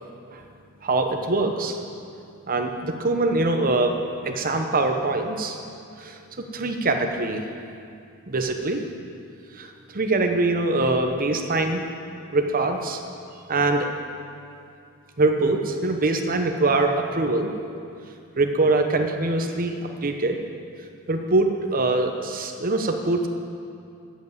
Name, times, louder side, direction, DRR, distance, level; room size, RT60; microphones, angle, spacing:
voice 1, 0.8-1.8 2.5-5.6 6.0-7.4 8.3-8.8 9.6-11.8 12.3-13.0 13.5-13.9 15.2-17.5 18.4-20.4 21.1-23.3, right 2 dB, 40° right, 5 dB, 0.9 m, -23 dB
9.5 x 8.1 x 8.0 m, 2.5 s
head